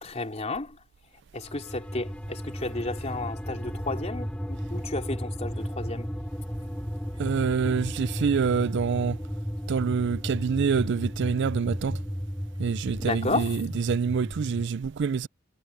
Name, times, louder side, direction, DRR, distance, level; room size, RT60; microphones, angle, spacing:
voice 1, 0.0-0.8 1.3-6.1 13.0-13.5, left 2 dB, 35° left, 3.3 m, -32 dB
sound 1, 1.4-14.7, equal, 5° left, 3.4 m, -34 dB
voice 2, 7.2-9.2 9.7-12.0 12.6-15.3, right 6 dB, 60° right, 0.4 m, -26 dB
head